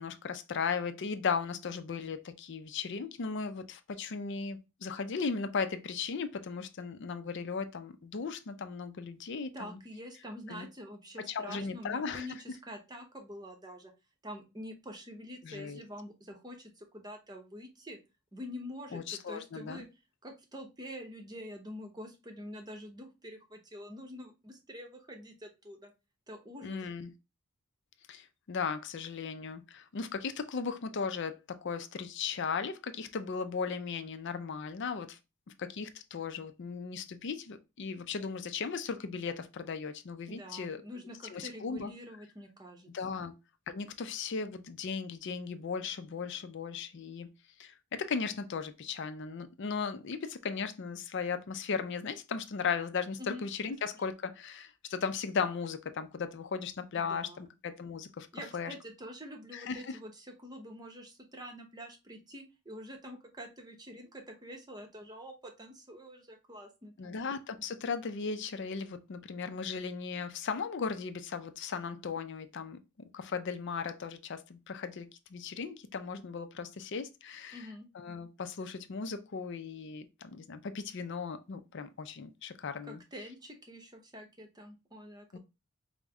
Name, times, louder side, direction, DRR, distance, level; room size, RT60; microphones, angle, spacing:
voice 1, 0.0-9.8 10.5-10.7 11.3-12.3 15.4-15.8 18.9-19.9 26.6-27.1 28.1-35.2 35.6-40.8 41.3-41.9 42.9-43.3 43.7-47.3 47.6-58.3 58.5-58.7 59.5-60.0 67.0-77.7 77.9-83.0 85.3-85.4, left 5 dB, 55° left, 0.4 m, -37 dB
voice 2, 9.5-13.9 14.2-18.0 18.3-19.9 20.2-25.9 26.3-26.8 40.3-42.9 53.2-53.4 57.0-57.5 58.3-67.2 77.5-77.9 82.8-85.4, equal, 20° right, 0.7 m, -46 dB
5.0 x 2.1 x 3.4 m
head